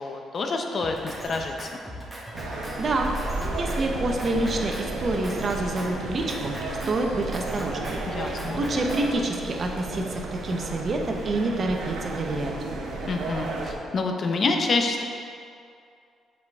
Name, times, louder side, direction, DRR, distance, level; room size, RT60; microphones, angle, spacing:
voice 1, 0.0-1.8 8.1-8.6 13.1-15.0, left 3 dB, 45° left, 3 dB, 0.7 m, -27 dB
Drum kit, 0.8-9.1, equal, ahead, 1.2 m, -39 dB
sound 1, 2.3-13.7, right 2 dB, 85° right, 1.0 m, -34 dB
sound 2, 2.8-8.0, right 2 dB, 20° right, 1.5 m, -38 dB
voice 2, 2.8-3.1 3.6-6.5 6.9-12.5, right 2 dB, 45° right, 2 dB, 0.8 m, -27 dB
7.1 x 5.0 x 3.5 m, 2.4 s
cardioid pair, 90°, 0 cm